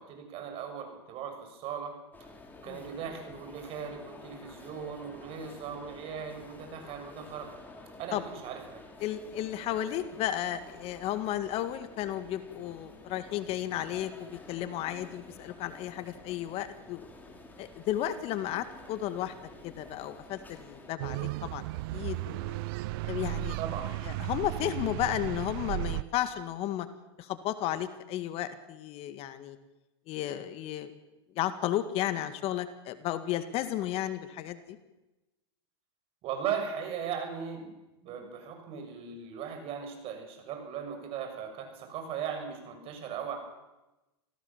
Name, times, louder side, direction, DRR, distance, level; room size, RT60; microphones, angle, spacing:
voice 1, 0.0-1.9 2.2-2.3 2.6-7.5 8.0-8.8 23.6-23.9 36.2-37.8 38.0-43.4, right 7 dB, 45° right, 5 dB, 6.9 m, -38 dB
sound 1, 2.1-20.9, left 2 dB, 15° left, 4.5 m, -51 dB
voice 2, 9.0-17.1 17.6-19.3 19.6-21.6 21.9-22.6 23.0-23.6 24.1-26.9 27.2-29.6 30.1-30.9 31.4-34.8, left 12 dB, 45° left, 11 dB, 1.9 m, -33 dB
sound 2, 21.0-26.0, right 19 dB, 60° right, 0.7 m, -35 dB
27.0 x 16.5 x 7.4 m, 1.0 s
hypercardioid pair, 115°, 14 cm